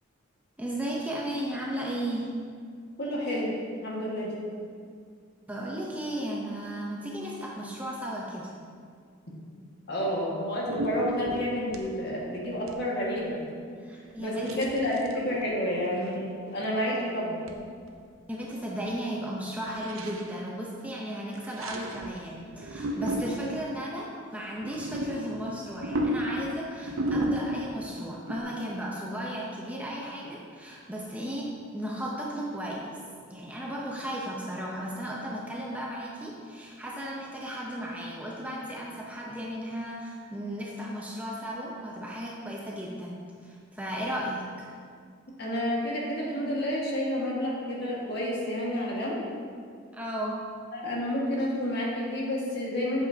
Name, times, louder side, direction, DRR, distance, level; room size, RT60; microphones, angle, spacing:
voice 1, 0.6-2.3 5.5-8.5 13.8-14.6 18.3-33.0 33.3-44.7 49.9-50.4, equal, 5° right, -3 dB, 0.7 m, -35 dB
voice 2, 3.0-3.5 3.8-4.3 9.9-13.4 14.2-17.4 45.4-49.2 50.7-53.0, equal, 55° left, -4 dB, 1.6 m, -30 dB
sound 1, 10.0-10.3 10.6-11.9 12.4-12.8 13.1-13.2 14.4-15.5 16.0-16.3 16.6-16.9 17.5-17.6 17.9-18.0 18.2-18.6 18.9-19.0 19.7-20.4 21.3-22.2 22.5-23.6 24.5-27.8 28.3-28.4, right 1 dB, 90° right, 0.6 m, -33 dB
8.4 x 7.3 x 2.8 m, 2.1 s
head